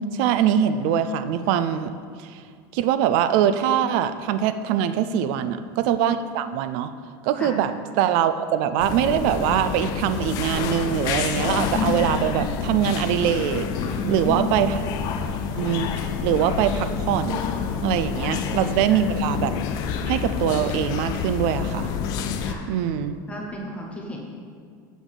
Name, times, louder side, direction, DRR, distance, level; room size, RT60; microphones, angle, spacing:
voice 1, 0.1-1.9 2.2-2.4 2.7-6.9 7.2-13.7 14.1-14.8 15.6-17.4 17.8-19.5 20.1-21.9 22.7-23.2, right 9 dB, 55° right, 12 dB, 0.4 m, -23 dB
sound 1, 8.8-22.5, left 7 dB, 40° left, 0.4 m, -28 dB
voice 2, 13.9-14.6 18.2-18.4 18.9-19.0 22.4-22.7 23.3-24.2, equal, 10° left, -1 dB, 0.7 m, -33 dB
7.0 x 3.8 x 6.2 m, 2.2 s
supercardioid pair, 165°, 10 cm